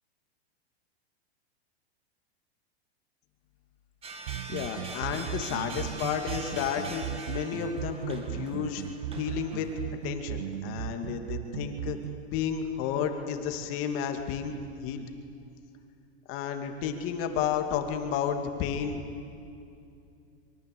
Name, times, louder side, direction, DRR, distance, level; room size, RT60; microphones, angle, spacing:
sound 1, 4.0-9.9, right 3 dB, 15° right, 2.3 m, -43 dB
sound 2, 4.3-12.3, right 15 dB, 65° right, 0.6 m, -37 dB
voice 1, 4.5-8.8 9.2-9.7 10.0-12.0 12.3-15.1 16.3-19.0, left 8 dB, 40° left, 5 dB, 2.6 m, -32 dB
24.5 x 23.5 x 8.6 m, 2.5 s
supercardioid pair, 145°, 32 cm